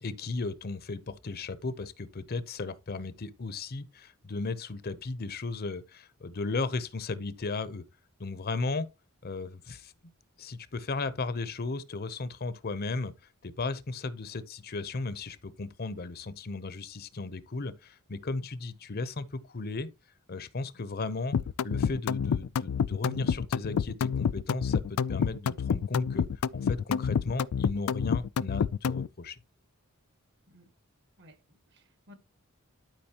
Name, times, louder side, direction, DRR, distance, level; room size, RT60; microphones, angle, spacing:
voice 1, 0.0-7.8 8.2-8.9 9.2-9.9 10.4-13.1 13.4-19.9 20.3-21.4 21.6-24.8 25.1-26.3 26.5-29.4, left 3 dB, 45° left, 0.7 m, -35 dB
sound 1, 21.3-29.1, left 7 dB, 80° left, 0.3 m, -28 dB
voice 2, 31.2-32.1, left 1 dB, 55° right, 1.4 m, -57 dB
12.0 x 5.1 x 2.9 m
head